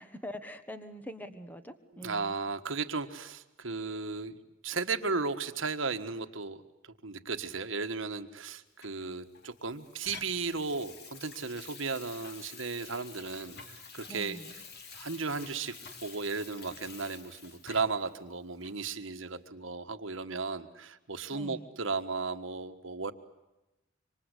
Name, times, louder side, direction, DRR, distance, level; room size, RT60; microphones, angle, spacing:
voice 1, 0.0-2.3 14.1-14.5 21.3-21.7, equal, 10° left, 10 dB, 1.4 m, -44 dB
voice 2, 2.0-4.4 4.6-14.4 14.9-15.7 16.0-23.1, right 4 dB, 65° right, 8 dB, 1.5 m, -35 dB
Water tap faucet / Sink (filling or washing), 8.8-18.1 18.6-18.8, left 5 dB, 55° left, 2.7 m, -49 dB
27.0 x 25.5 x 8.3 m, 0.97 s
head